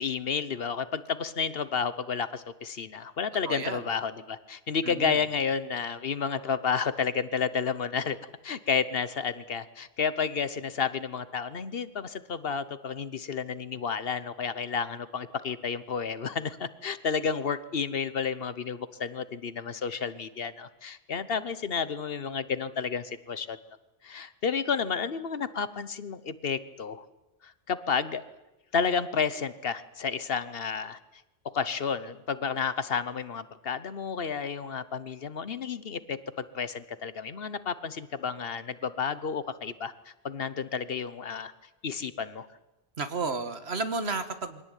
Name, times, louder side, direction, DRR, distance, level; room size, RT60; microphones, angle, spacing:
voice 1, 0.0-8.2 8.4-23.6 24.0-27.0 27.4-28.2 28.7-31.0 31.5-39.9 40.2-41.5 41.8-42.5, left 6 dB, 60° left, 14 dB, 1.2 m, -31 dB
voice 2, 3.5-3.8 4.8-5.2 43.0-44.6, right 4 dB, 75° right, 10 dB, 1.8 m, -32 dB
23.5 x 17.5 x 9.1 m, 1.0 s
omnidirectional pair, 1.1 m